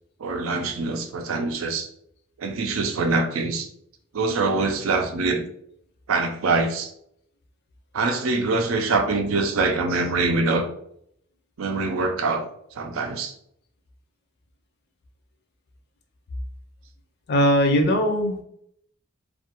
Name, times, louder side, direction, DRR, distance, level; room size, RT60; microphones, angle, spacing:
voice 1, 0.2-1.9 2.4-3.7 4.1-5.4 6.1-6.9 7.9-10.7 11.6-12.4 12.7-13.3, right 3 dB, 85° right, 6 dB, 0.4 m, -24 dB
voice 2, 17.3-18.4, equal, 55° left, 5 dB, 0.5 m, -20 dB
2.4 x 2.1 x 2.8 m, 0.69 s
head